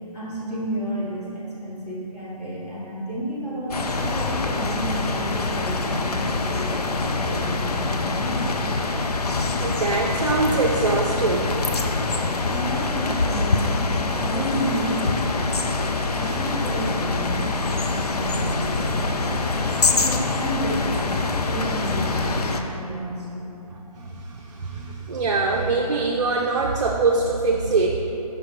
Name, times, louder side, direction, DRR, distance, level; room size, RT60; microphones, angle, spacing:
voice 1, 0.1-8.5 12.5-15.7 16.1-19.5 19.9-21.1 21.4-23.5, right 1 dB, 10° left, -10 dB, 1.3 m, -31 dB
sound 1, 3.7-22.6, left 3 dB, 75° left, 0.6 m, -25 dB
voice 2, 9.5-11.6 24.0-28.0, right 3 dB, 55° right, -1 dB, 0.6 m, -23 dB
5.8 x 4.8 x 5.0 m, 2.8 s
figure-of-eight pair, 160°, 20 cm